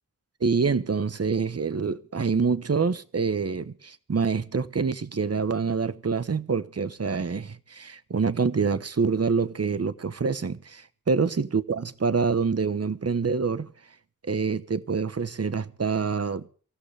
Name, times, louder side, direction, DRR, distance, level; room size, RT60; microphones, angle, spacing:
voice 1, 0.4-13.7 14.3-16.5, right 5 dB, 50° right, 1.1 m, -26 dB
24.5 x 15.5 x 3.4 m
wide cardioid pair, 65°, 33 cm